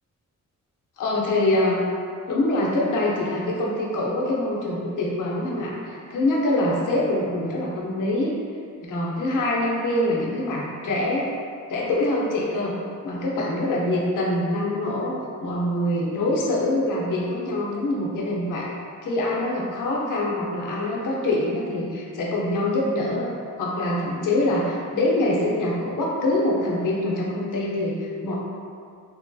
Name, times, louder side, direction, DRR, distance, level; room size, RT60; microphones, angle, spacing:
voice 1, 1.0-1.8 2.3-8.3 8.9-11.3 11.7-12.7 13.0-18.7 19.0-23.3 23.6-28.3, left 1 dB, 80° left, -3 dB, 0.6 m, -24 dB
2.8 x 2.6 x 2.2 m, 2.3 s
wide cardioid pair, 150°, 31 cm